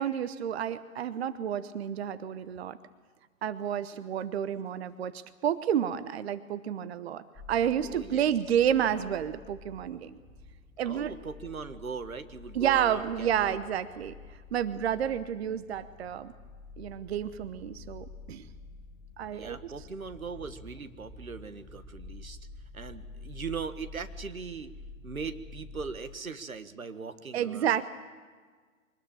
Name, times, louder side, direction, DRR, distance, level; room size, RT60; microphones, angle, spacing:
voice 1, 0.0-2.8 3.4-10.2 10.8-11.1 12.5-14.1 14.5-16.3 16.8-18.5 19.2-19.7 27.3-27.8, right 9 dB, 50° right, 14 dB, 1.0 m, -30 dB
sound 1, 7.3-26.0, left 3 dB, 15° left, 1.6 m, -49 dB
voice 2, 7.8-8.3 10.8-13.7 19.3-22.4 22.7-24.7 25.0-27.8, right 5 dB, 85° right, 10 dB, 1.7 m, -40 dB
24.0 x 20.0 x 8.9 m, 1.5 s
figure-of-eight pair, 130°, 41 cm